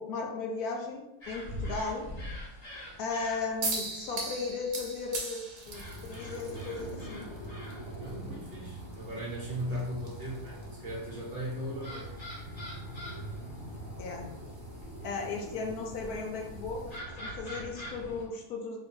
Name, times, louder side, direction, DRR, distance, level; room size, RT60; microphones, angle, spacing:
voice 1, 0.0-2.0 3.0-7.3 9.7-9.9 14.0-14.3 15.0-18.8, left 4 dB, 75° left, 1 dB, 1.0 m, -36 dB
sound 1, 1.2-18.2, equal, 30° left, 0.9 m, -43 dB
sound 2, 3.6-17.0, right 3 dB, 90° right, 1.4 m, -43 dB
voice 2, 8.0-10.6 10.8-12.1, equal, 45° right, -5 dB, 1.0 m, -37 dB
3.7 x 3.0 x 2.7 m, 0.91 s
omnidirectional pair, 1.7 m